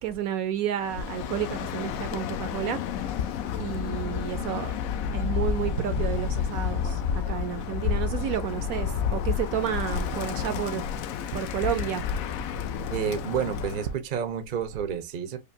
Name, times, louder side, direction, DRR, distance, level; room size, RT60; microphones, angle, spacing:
voice 1, 0.0-2.8 3.6-4.8 5.1-10.8 11.3-12.0, right 10 dB, 70° right, 0.9 m, -31 dB
Bird, 0.8-13.9, left 7 dB, 70° left, 0.9 m, -30 dB
voice 2, 12.9-15.4, right 8 dB, 50° right, 0.6 m, -30 dB
5.0 x 2.5 x 2.6 m
omnidirectional pair, 1.7 m